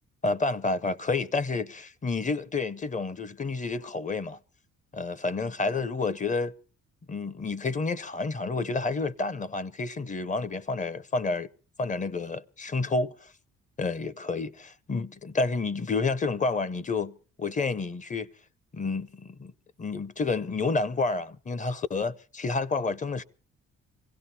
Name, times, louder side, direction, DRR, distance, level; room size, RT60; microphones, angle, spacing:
voice 1, 0.2-4.4 4.9-6.5 7.1-11.5 11.8-13.3 13.8-18.3 18.7-19.5 19.8-23.2, left 3 dB, 25° left, 0.6 m, -29 dB
25.5 x 16.5 x 2.8 m
cardioid pair, 90°, 30 cm